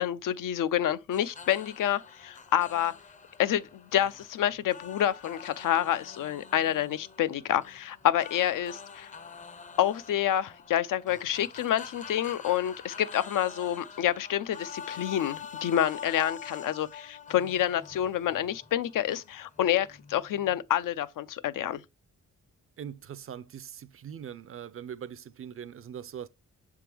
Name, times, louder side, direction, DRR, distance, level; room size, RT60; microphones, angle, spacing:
voice 1, 0.0-2.9 3.4-9.1 9.8-21.8, left 11 dB, 90° left, 0.6 m, -28 dB
sound 1, 1.1-20.6, left 6 dB, 25° left, 0.5 m, -46 dB
voice 2, 22.8-26.3, right 8 dB, 45° right, 0.4 m, -41 dB
6.7 x 3.6 x 4.4 m
wide cardioid pair, 155°, 31 cm